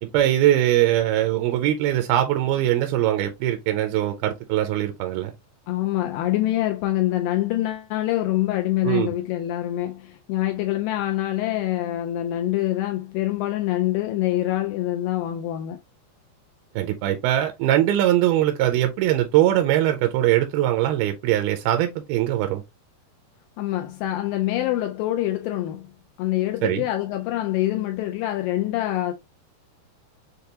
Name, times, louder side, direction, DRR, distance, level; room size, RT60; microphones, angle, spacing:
voice 1, 0.0-5.3 8.8-9.1 16.8-22.6 26.6-26.8, right 13 dB, 80° right, 2.3 m, -21 dB
voice 2, 5.7-15.8 23.6-25.9 26.2-29.1, left 14 dB, 90° left, 2.0 m, -25 dB
6.5 x 2.3 x 2.8 m
omnidirectional pair, 4.5 m